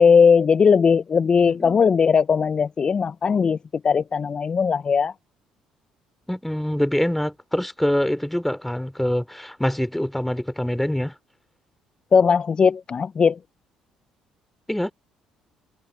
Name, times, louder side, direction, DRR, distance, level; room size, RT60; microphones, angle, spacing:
voice 1, 0.0-3.6 3.8-5.1 12.1-13.4, left 6 dB, 40° left, 0.5 m, -18 dB
voice 2, 1.5-1.8 6.3-11.1 14.7-14.9, left 1 dB, 5° left, 3.2 m, -25 dB
hypercardioid pair, 60°, 2 cm